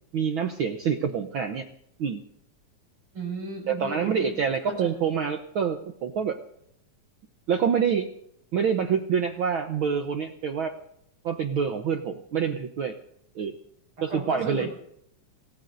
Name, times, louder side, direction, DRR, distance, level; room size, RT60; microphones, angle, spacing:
voice 1, 0.1-1.7 2.0-2.2 3.7-6.4 7.5-8.1 8.5-10.8 11.2-13.0 13.3-13.5 14.0-14.7, right 7 dB, 85° right, 5 dB, 1.1 m, -26 dB
voice 2, 3.1-4.3 4.7-5.0 14.0-14.8, right 2 dB, 45° right, 1 dB, 6.5 m, -35 dB
27.5 x 19.0 x 2.6 m, 0.72 s
omnidirectional pair, 3.5 m